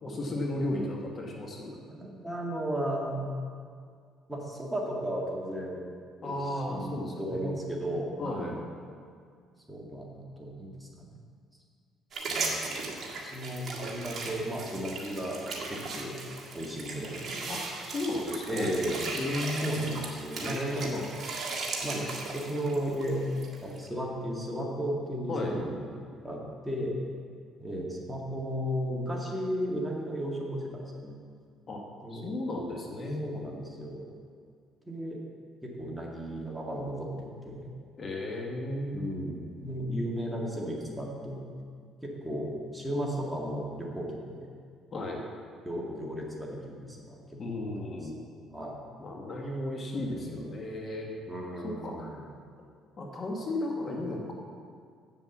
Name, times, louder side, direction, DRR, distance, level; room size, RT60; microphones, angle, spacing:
voice 1, 0.0-1.8 6.2-7.7 8.2-8.6 17.5-18.7 19.1-19.9 20.4-21.1 25.3-25.6 31.7-31.8 32.1-33.3 38.0-39.1 44.9-45.2 47.4-48.2 49.0-51.1 51.6-52.2 53.0-54.3, left 1 dB, 40° left, 0 dB, 1.4 m, -34 dB
voice 2, 1.7-3.4 4.3-5.8 6.2-8.6 9.7-11.2 12.3-15.4 15.7-16.2 16.5-17.5 18.5-19.0 19.6-20.9 21.8-22.0 22.3-23.2 23.6-25.8 26.2-27.0 27.6-31.2 32.0-32.3 33.2-34.1 34.9-35.2 35.6-37.7 38.9-41.4 42.0-44.5 45.6-48.1 48.5-48.8 50.0-50.5 51.3-52.3, equal, 5° right, -2 dB, 1.8 m, -35 dB
sound 1, 12.1-23.9, right 3 dB, 45° right, 1.8 m, -37 dB
7.7 x 7.2 x 7.1 m, 2.1 s
cardioid pair, 105°, 0 cm